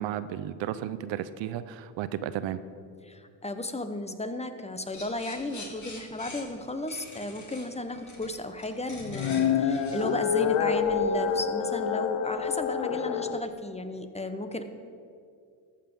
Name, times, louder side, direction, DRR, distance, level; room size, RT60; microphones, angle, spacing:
voice 1, 0.0-2.6, right 11 dB, 70° right, 14 dB, 0.6 m, -33 dB
voice 2, 3.0-14.6, left 1 dB, 15° left, 9 dB, 0.7 m, -34 dB
sound 1, 4.9-11.1, left 3 dB, 40° left, 2.3 m, -45 dB
sound 2, 9.0-13.4, left 7 dB, 75° left, 0.8 m, -27 dB
14.0 x 5.8 x 5.3 m, 2.3 s
supercardioid pair, 75°, 47 cm